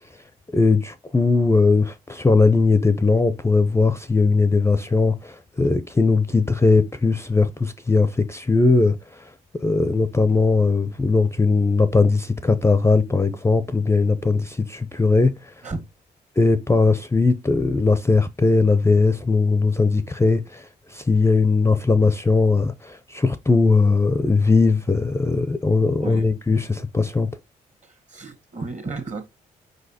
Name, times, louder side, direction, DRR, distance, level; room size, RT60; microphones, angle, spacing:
voice 1, 0.5-9.2 9.6-15.3 16.4-20.7 20.9-27.3, left 3 dB, 15° left, 0.4 m, -19 dB
voice 2, 27.8-29.2, right 3 dB, 40° right, 1.3 m, -33 dB
4.7 x 4.0 x 2.7 m
hypercardioid pair, 45°, 19 cm